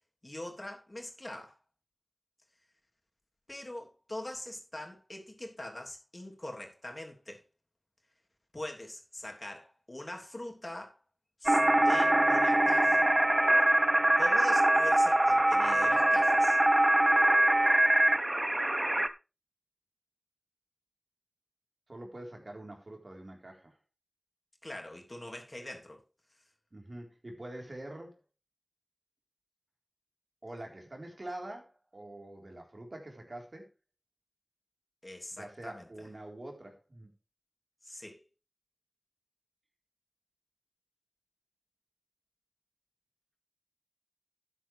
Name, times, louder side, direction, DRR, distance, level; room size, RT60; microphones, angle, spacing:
voice 1, 0.2-1.5 3.5-7.4 8.5-11.0 11.4-13.1 14.2-16.6 24.6-26.0 35.0-35.8 37.8-38.2, left 1 dB, 40° left, 3.1 m, -43 dB
sound 1, 11.5-19.1, right 1 dB, 35° right, 0.9 m, -24 dB
voice 2, 21.9-23.8 26.7-28.2 30.4-33.7 35.3-37.1, right 1 dB, 65° right, 4.1 m, -45 dB
12.0 x 9.9 x 3.4 m
wide cardioid pair, 55°, 0 cm